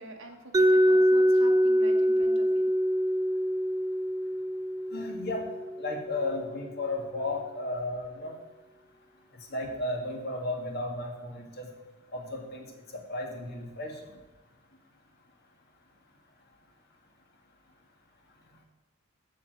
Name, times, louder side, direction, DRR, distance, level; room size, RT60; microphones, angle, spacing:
voice 1, 0.0-2.7, right 1 dB, 65° right, 3 dB, 1.5 m, -46 dB
Mallet percussion, 0.5-6.4, equal, 15° right, 0.3 m, -25 dB
voice 2, 4.9-5.4 5.8-8.4 9.5-11.7 12.1-14.1, left 2 dB, 50° left, 1 dB, 2.0 m, -34 dB
7.7 x 6.9 x 7.7 m, 1.1 s
head